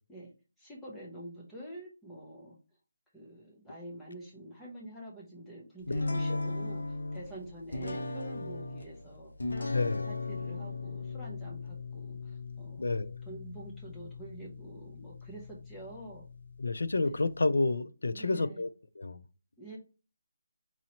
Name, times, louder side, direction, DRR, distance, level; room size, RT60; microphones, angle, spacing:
voice 1, 0.6-2.6 3.1-12.9 13.3-16.2 17.0-17.2 18.1-18.6 19.6-19.8, right 1 dB, 5° left, 0.5 m, -47 dB
sound 1, 5.9-17.4, left 3 dB, 90° left, 0.8 m, -38 dB
voice 2, 9.7-10.1 12.8-13.2 16.6-18.7 19.0-19.2, left 3 dB, 70° left, 0.4 m, -29 dB
4.0 x 2.9 x 2.8 m
hypercardioid pair, 180°, 0 cm